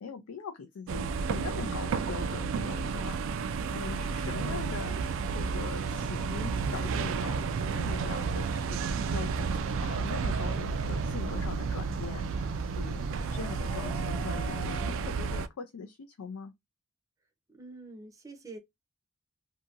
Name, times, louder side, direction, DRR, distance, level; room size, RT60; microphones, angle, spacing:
voice 1, 0.0-3.2 3.7-7.5 7.8-8.8 9.1-16.5, left 5 dB, 80° left, 0.4 m, -42 dB
sound 1, 0.9-15.5, right 5 dB, 65° right, 0.3 m, -31 dB
voice 2, 4.2-4.7 17.5-18.6, right 2 dB, 15° right, 0.6 m, -46 dB
sound 2, 5.9-14.9, equal, 20° left, 1.0 m, -51 dB
2.7 x 2.7 x 2.4 m
head